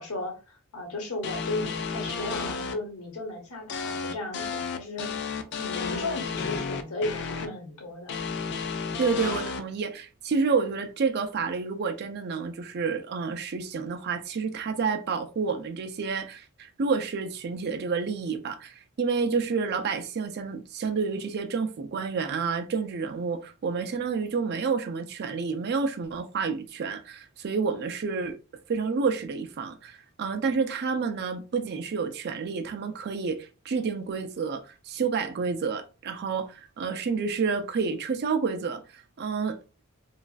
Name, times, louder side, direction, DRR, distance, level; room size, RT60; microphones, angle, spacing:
voice 1, 0.0-5.1 5.6-8.2, left 2 dB, 70° left, 1.0 m, -35 dB
sound 1, 1.2-2.7 3.7-7.5 8.1-9.6, left 5 dB, 50° left, 0.4 m, -32 dB
voice 2, 9.0-28.4 28.7-39.6, right 5 dB, 50° right, 0.4 m, -29 dB
3.0 x 2.4 x 2.3 m
head